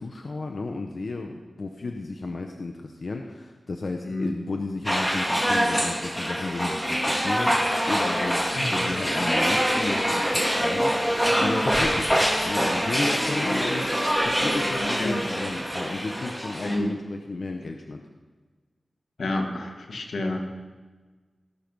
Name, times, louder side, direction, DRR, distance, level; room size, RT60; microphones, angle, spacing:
voice 1, 0.0-18.0, left 3 dB, 65° left, 3 dB, 0.7 m, -33 dB
sound 1, 4.8-16.8, equal, 5° left, 2.1 m, -25 dB
voice 2, 8.5-9.1 9.4-9.6 12.0-12.2 13.4-13.6 14.8-15.2 16.6-17.0 19.2-20.4, left 1 dB, 85° left, 3 dB, 1.4 m, -30 dB
17.5 x 6.0 x 5.3 m, 1.4 s
wide cardioid pair, 80°, 0 cm